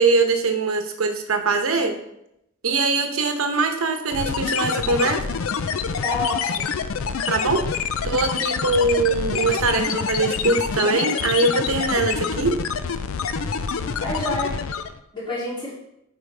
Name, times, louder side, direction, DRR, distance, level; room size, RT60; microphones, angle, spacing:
voice 1, 0.0-2.0 2.6-5.2 7.3-7.6 8.0-12.6, right 3 dB, 75° right, 6 dB, 0.9 m, -22 dB
sound 1, 4.1-15.0, left 6 dB, 70° left, 0.4 m, -26 dB
voice 2, 6.0-6.7 14.0-14.6 15.1-15.7, left 2 dB, 25° left, -7 dB, 2.7 m, -27 dB
9.1 x 4.9 x 3.3 m, 0.82 s
head